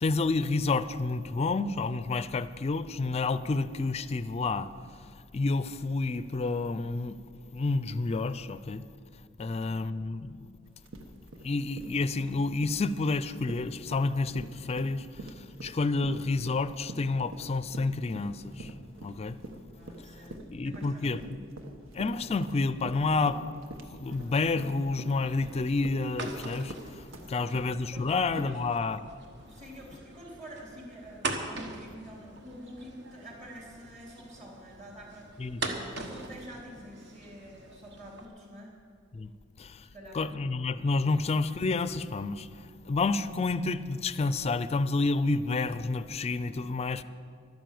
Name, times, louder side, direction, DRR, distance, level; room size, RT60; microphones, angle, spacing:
voice 1, 0.0-4.7 5.3-7.2 7.5-8.8 9.4-10.4 11.4-15.0 15.6-18.7 19.0-19.4 20.5-21.2 21.9-23.4 24.0-26.7 27.3-29.0 35.4-35.6 39.1-39.3 39.6-39.7 40.1-42.5 42.9-47.0, left 3 dB, 30° left, 0.4 m, -29 dB
voice 2, 9.4-9.9 19.8-20.3 20.6-21.3 27.1-27.5 27.9-28.1 28.4-28.6 29.5-35.3 35.9-38.8 39.9-41.0, equal, 35° right, 3.6 m, -48 dB
sound 1, 10.7-28.8, right 1 dB, 90° right, 1.3 m, -45 dB
sound 2, 24.1-38.3, right 2 dB, 60° right, 1.4 m, -42 dB
12.0 x 10.5 x 7.7 m
head